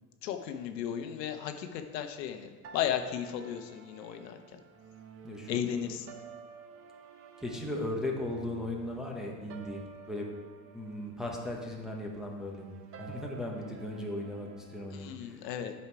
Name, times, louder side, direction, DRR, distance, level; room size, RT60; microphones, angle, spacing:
voice 1, 0.2-4.6 5.5-6.1 14.9-15.7, left 9 dB, 85° left, 7 dB, 1.0 m, -35 dB
sound 1, 2.6-14.9, right 6 dB, 30° right, 0.6 m, -51 dB
voice 2, 5.2-5.6 7.4-9.8 10.1-10.3 10.7-12.7 13.0-15.5, left 1 dB, ahead, -2 dB, 0.9 m, -37 dB
8.7 x 5.6 x 4.7 m, 1.4 s
supercardioid pair, 135°, 48 cm